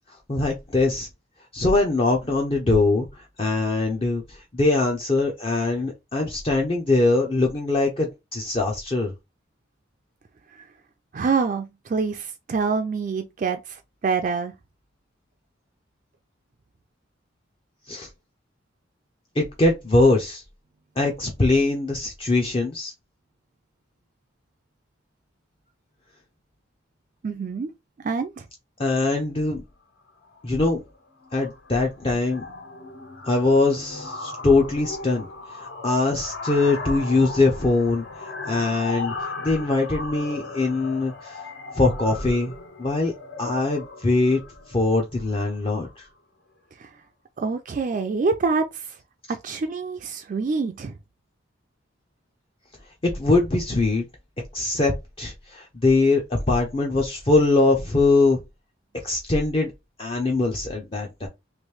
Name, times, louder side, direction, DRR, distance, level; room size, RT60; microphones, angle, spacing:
voice 1, 0.3-1.1 1.5-9.1 17.9-18.1 19.4-20.4 21.0-22.9 28.8-29.6 30.4-30.8 31.3-32.5 33.2-39.1 39.4-41.4 41.7-42.5 42.8-43.1 43.4-44.4 44.7-46.1 53.0-54.0 54.5-54.9 55.2-58.4 59.0-59.7 60.0-61.3, left 3 dB, 30° left, 0.5 m, -22 dB
voice 2, 11.1-14.5 27.2-27.7 28.0-28.4 46.8-46.9 47.4-48.9 49.4-50.9, right 4 dB, 40° right, 0.3 m, -26 dB
sound 1, 30.1-30.4 30.7-31.0 31.2-46.1, left 3 dB, 65° left, 0.9 m, -37 dB
3.0 x 2.6 x 3.1 m
head